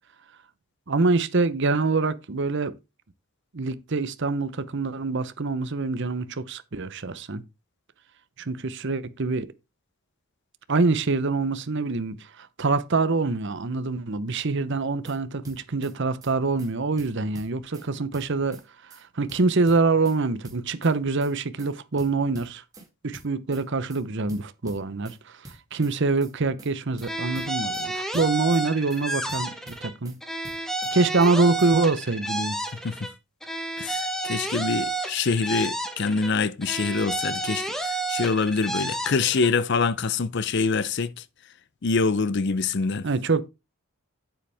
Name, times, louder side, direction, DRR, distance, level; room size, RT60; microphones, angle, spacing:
voice 1, 0.9-2.7 3.5-7.4 8.4-9.5 10.7-22.6 23.0-30.2 30.9-32.6 43.0-43.5, right 3 dB, 55° right, 0.8 m, -25 dB
sound 1, 14.8-15.2 15.4-15.9 16.2-16.3 16.6-16.7 17.0-17.9 18.1-18.6 18.9-19.0 19.3-20.2 20.4-20.9 21.2-21.3 21.6-21.7 22.0-22.9 23.1-23.6 23.9-24.0 24.3-25.2 25.4-25.9 26.2-26.3 26.6-26.7 27.0-27.9 28.1-28.6 28.9-29.0 29.3-30.2 30.4-30.9 31.2-31.3 31.6-31.7, right 1 dB, 15° right, 2.5 m, -46 dB
sound 2, 27.0-29.9 30.2-33.1 33.4-36.3 36.6-39.5, right 2 dB, ahead, 1.0 m, -31 dB
voice 2, 33.8-41.2 41.8-43.1, left 4 dB, 50° left, 0.6 m, -25 dB
8.9 x 7.7 x 3.4 m
head